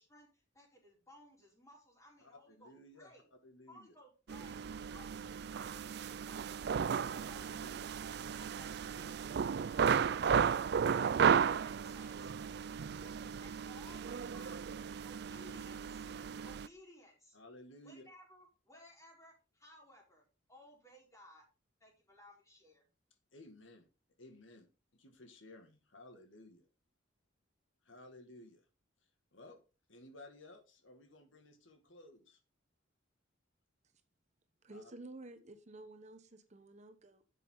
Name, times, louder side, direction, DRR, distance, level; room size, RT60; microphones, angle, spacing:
voice 1, 0.0-3.3 3.7-6.5 7.0-12.3 13.0-16.1 16.4-17.4 17.8-21.5 21.8-22.9, left 1 dB, 15° left, -1 dB, 4.3 m, -60 dB
voice 2, 2.5-3.1 3.4-3.9 7.2-7.9 17.3-18.1 23.3-23.8 24.2-24.6 25.0-26.7 27.8-28.7 29.3-29.6 29.9-32.4 34.7-34.8, left 1 dB, 85° left, 6 dB, 2.1 m, -56 dB
sound 1, 4.3-16.7, right 7 dB, 55° right, 0.4 m, -34 dB
voice 3, 34.6-37.2, right 2 dB, 35° right, 9 dB, 1.0 m, -52 dB
11.0 x 7.6 x 3.9 m, 0.31 s
head